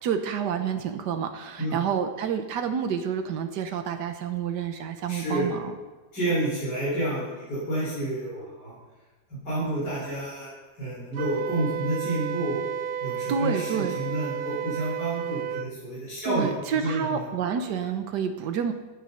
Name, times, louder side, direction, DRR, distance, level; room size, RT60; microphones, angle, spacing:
voice 1, 0.0-5.7 13.3-14.0 16.2-18.7, right 7 dB, 85° right, 6 dB, 1.5 m, -29 dB
voice 2, 5.1-5.5 6.1-8.7 9.3-10.5 10.8-12.6 13.0-17.2, right 1 dB, 90° left, -8 dB, 6.3 m, -29 dB
Wind instrument woodwind instrument, 11.1-15.7, right 7 dB, 70° right, 1.0 m, -32 dB
16.0 x 10.5 x 5.6 m, 1.2 s
omnidirectional pair, 1.8 m